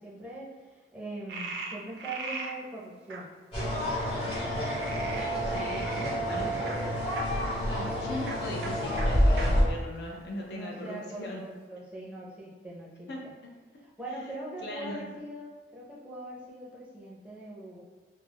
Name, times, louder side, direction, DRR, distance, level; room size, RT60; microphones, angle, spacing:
voice 1, 0.0-3.3 10.5-13.1 14.0-17.8, right 1 dB, 5° right, -6 dB, 0.5 m, -41 dB
Frog, 1.3-2.5 3.1-3.2 4.5-7.2 8.2-8.4 8.6-8.7 9.0-9.1 9.4-9.5 10.1-10.8, right 4 dB, 65° right, 0.4 m, -39 dB
sound 1, 3.5-9.6, equal, 30° left, 0.9 m, -28 dB
voice 2, 5.4-7.0 7.6-11.4 13.1-13.5 14.1-14.2 14.6-15.0, left 1 dB, 65° left, -1 dB, 0.4 m, -39 dB
2.3 x 2.0 x 3.4 m, 1.4 s
head